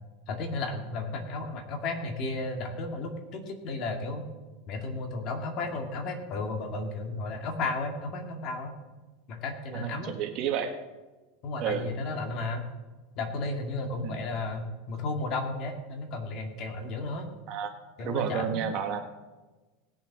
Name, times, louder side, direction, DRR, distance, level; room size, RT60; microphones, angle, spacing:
voice 1, 0.3-4.2 4.7-8.7 9.3-10.1 11.4-12.6 13.2-17.3 18.0-18.6, left 3 dB, 45° left, 3 dB, 2.3 m, -33 dB
voice 2, 9.7-10.7 11.6-11.9 14.0-14.2 17.5-19.0, right 8 dB, 45° right, 5 dB, 1.6 m, -31 dB
19.0 x 7.1 x 4.8 m, 1.2 s
supercardioid pair, 145°, 0 cm